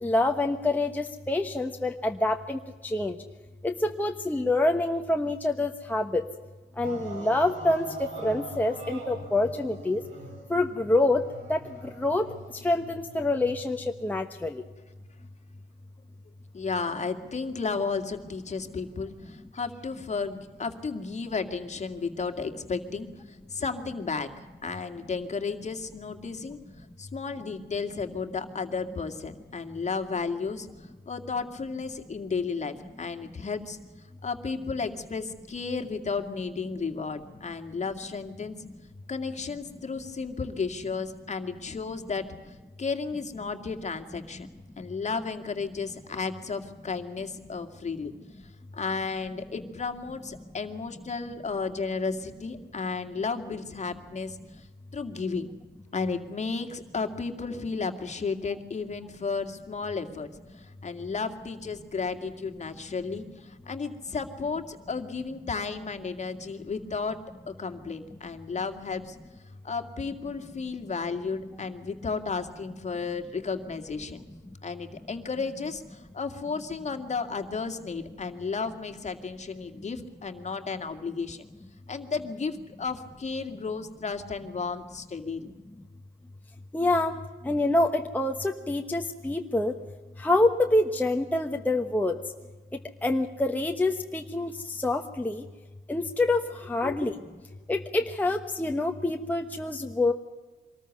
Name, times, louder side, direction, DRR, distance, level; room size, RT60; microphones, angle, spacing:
voice 1, 0.0-3.2 3.6-6.2 6.8-10.0 10.5-11.2 11.5-12.3 12.6-14.6 86.7-87.1 87.4-89.8 90.2-92.2 93.0-95.4 95.9-97.1 97.7-100.1, left 2 dB, 10° left, 3 dB, 1.1 m, -26 dB
sound 1, 6.8-14.0 15.1-15.2, right 4 dB, 80° right, 6.3 m, -43 dB
voice 2, 16.5-24.3 24.6-26.6 27.0-30.7 31.1-33.8 34.2-38.6 39.1-42.3 42.8-44.5 44.8-48.1 48.7-54.4 54.9-55.5 55.9-60.3 60.5-67.2 67.5-69.2 69.6-74.2 74.6-81.5 81.9-85.5 96.8-97.1, left 4 dB, 35° left, 7 dB, 2.2 m, -33 dB
24.0 x 14.0 x 9.5 m, 1.3 s
cardioid pair, 90°, 20 cm